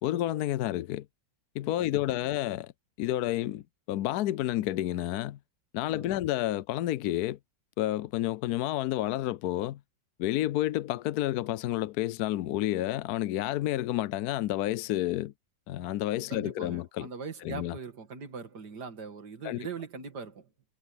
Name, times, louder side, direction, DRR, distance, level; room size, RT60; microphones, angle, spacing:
voice 1, 0.0-1.1 1.5-2.7 3.0-3.6 3.9-5.4 5.7-7.4 7.8-9.8 10.2-15.3 15.7-17.1 17.4-17.8 19.4-19.6, left 14 dB, 70° left, 0.9 m, -30 dB
voice 2, 1.8-2.3 5.9-6.2 16.3-20.5, right 5 dB, 55° right, 2.7 m, -41 dB
omnidirectional pair, 2.1 m